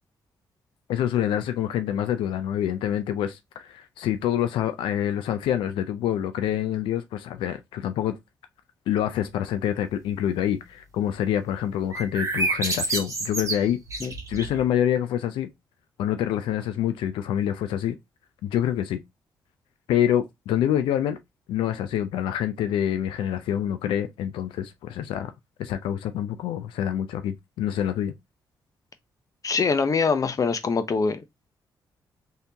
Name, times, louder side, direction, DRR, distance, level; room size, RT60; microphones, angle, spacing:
voice 1, 0.9-8.2 8.9-13.8 14.3-15.5 16.0-18.0 18.4-19.0 19.9-21.2 21.5-25.3 25.6-28.1, left 10 dB, 85° left, 0.4 m, -26 dB
sound 1, 11.9-14.6, right 2 dB, 40° right, 1.2 m, -28 dB
voice 2, 29.4-31.2, left 5 dB, 45° left, 0.6 m, -23 dB
3.3 x 2.8 x 2.8 m
cardioid pair, 65°, 8 cm